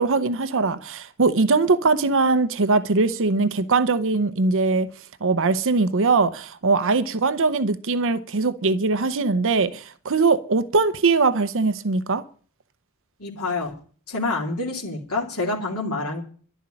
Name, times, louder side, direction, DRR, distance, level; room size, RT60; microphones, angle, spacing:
voice 1, 0.0-4.9 5.2-12.2, right 3 dB, 60° right, 0.8 m, -21 dB
voice 2, 13.2-13.7 14.1-16.2, left 3 dB, 85° left, 2.6 m, -27 dB
12.0 x 8.0 x 9.8 m
head